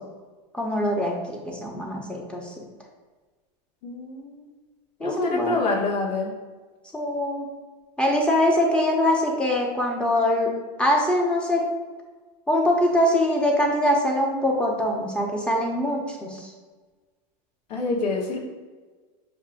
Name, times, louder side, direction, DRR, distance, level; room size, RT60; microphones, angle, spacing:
voice 1, 0.5-2.4 5.0-5.6 6.9-7.5 8.0-10.5 10.8-11.6 12.5-16.5, left 1 dB, 5° left, -1 dB, 0.7 m, -23 dB
voice 2, 3.8-4.5 5.0-6.3 17.7-18.4, left 3 dB, 85° left, -3 dB, 1.0 m, -26 dB
7.1 x 2.7 x 2.5 m, 1.3 s
supercardioid pair, 130°, 21 cm